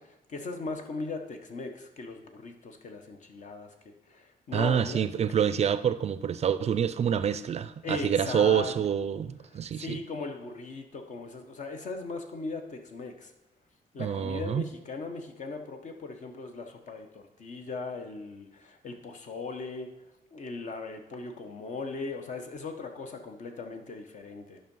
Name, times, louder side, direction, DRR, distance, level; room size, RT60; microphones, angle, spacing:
voice 1, 0.0-5.0 7.8-8.7 9.5-13.3 13.9-19.9 20.3-24.6, left 3 dB, 55° left, 5 dB, 1.2 m, -38 dB
voice 2, 4.5-10.0 14.0-14.6, right 8 dB, 45° right, 13 dB, 0.4 m, -27 dB
10.0 x 5.7 x 5.5 m, 0.90 s
wide cardioid pair, 150°, 15 cm